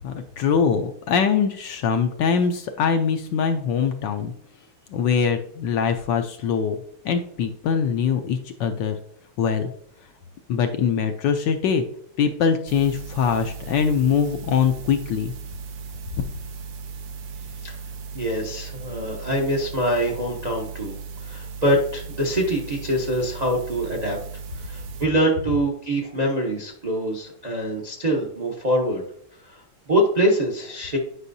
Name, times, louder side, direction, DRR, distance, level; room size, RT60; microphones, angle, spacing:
voice 1, 0.0-4.3 4.9-6.8 7.0-9.0 9.4-9.7 10.5-11.8 12.2-15.3 16.2-16.3, left 6 dB, 75° left, 6 dB, 1.1 m, -22 dB
sound 1, 12.7-25.1, right 5 dB, 90° right, 1.7 m, -37 dB
voice 2, 18.1-20.9 21.2-24.2 24.6-29.0 29.4-31.0, right 1 dB, 45° right, 0 dB, 0.5 m, -24 dB
9.8 x 5.4 x 2.6 m, 0.67 s
omnidirectional pair, 2.3 m